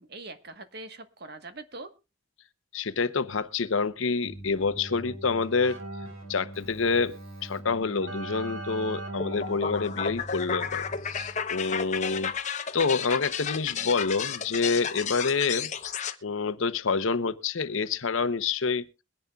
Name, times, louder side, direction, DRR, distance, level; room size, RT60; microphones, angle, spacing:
voice 1, 0.0-1.9 13.8-13.9, right 3 dB, 50° right, 1.3 m, -43 dB
voice 2, 2.7-5.8 6.3-7.1 7.4-12.3 12.7-15.7 16.2-18.8, left 4 dB, 80° left, 0.8 m, -27 dB
Keyboard (musical), 4.2-11.5, right 1 dB, 90° right, 3.5 m, -40 dB
sound 1, 9.2-16.1, left 7 dB, 35° left, 0.8 m, -33 dB
22.5 x 10.5 x 2.3 m
head